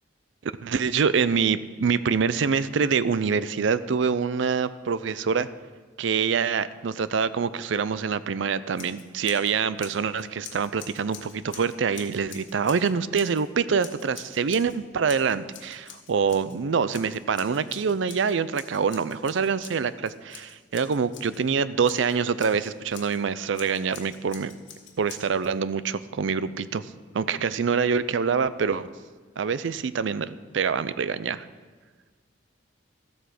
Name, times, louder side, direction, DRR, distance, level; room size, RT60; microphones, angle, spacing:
voice 1, 0.4-5.5 6.0-24.5 25.0-26.9 27.1-28.9 29.4-31.4, right 6 dB, 80° right, 15 dB, 0.5 m, -25 dB
Scissors, 8.7-9.5 9.8-13.4 13.8-14.8 15.1-16.6 16.9-21.4 21.8-23.2 23.5-25.5, left 8 dB, 75° left, 1.6 m, -46 dB
13.5 x 8.1 x 6.0 m, 1.4 s
head